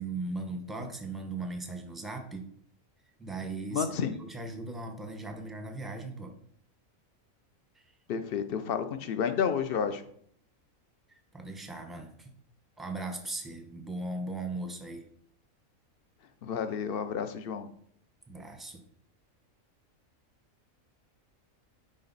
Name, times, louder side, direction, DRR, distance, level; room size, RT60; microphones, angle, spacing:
voice 1, 0.0-2.5 3.2-3.9 4.2-6.3 7.7-7.8 11.1-12.3 12.8-15.1 18.3-18.8, right 2 dB, ahead, 5 dB, 0.7 m, -38 dB
voice 2, 3.7-4.1 8.1-10.0 16.4-17.7, left 7 dB, 55° left, 10 dB, 0.7 m, -30 dB
10.5 x 4.1 x 4.1 m, 0.63 s
omnidirectional pair, 1.5 m